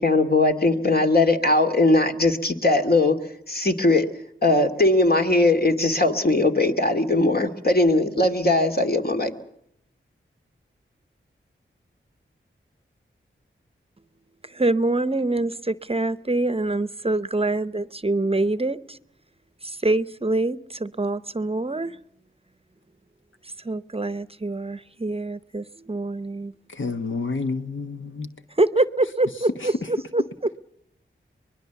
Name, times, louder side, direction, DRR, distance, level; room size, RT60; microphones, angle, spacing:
voice 1, 0.0-3.2 3.5-4.1 4.4-9.3, left 2 dB, 50° left, 2.3 m, -20 dB
voice 2, 14.4-19.0 19.6-22.0 23.4-26.5 28.6-30.5, right 2 dB, 30° right, 0.8 m, -25 dB
voice 3, 26.7-28.3 29.6-29.7, left 4 dB, 70° left, 1.2 m, -29 dB
24.0 x 20.5 x 7.0 m
cardioid pair, 45°, 21 cm